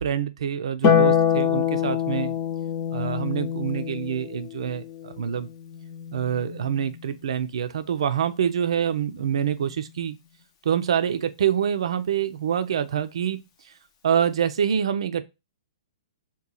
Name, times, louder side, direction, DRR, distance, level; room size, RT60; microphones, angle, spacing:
voice 1, 0.0-2.4 2.9-5.5 6.1-10.2 10.6-13.4 14.0-15.3, right 8 dB, 70° right, 0.4 m, -26 dB
Harp, 0.8-7.4 9.0-10.0, left 8 dB, 35° left, 0.6 m, -26 dB
2.9 x 2.3 x 3.7 m
hypercardioid pair, 130°, 3 cm